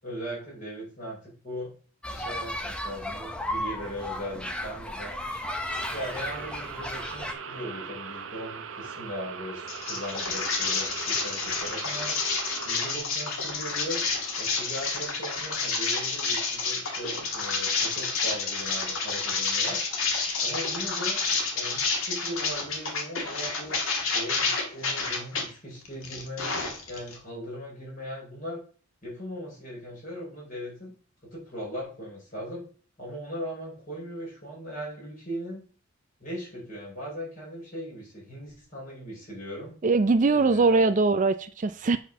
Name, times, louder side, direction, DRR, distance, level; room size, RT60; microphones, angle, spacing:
voice 1, 0.0-1.7 2.1-5.2 5.9-12.2 12.6-14.0 14.4-19.8 20.4-21.2 21.5-23.7 24.1-26.6 26.9-28.6 29.0-30.9 31.2-32.7 33.0-35.6 36.2-39.7 40.3-40.9, equal, 40° left, 5.1 m, -38 dB
sound 1, 2.0-7.3, left 1 dB, 5° left, 0.7 m, -34 dB
sound 2, 5.7-13.0, right 6 dB, 65° right, 0.8 m, -40 dB
sound 3, 9.7-25.4 25.9-27.2, left 4 dB, 70° left, 2.1 m, -29 dB
voice 2, 39.8-42.0, right 3 dB, 35° right, 0.4 m, -22 dB
8.1 x 4.4 x 6.0 m
head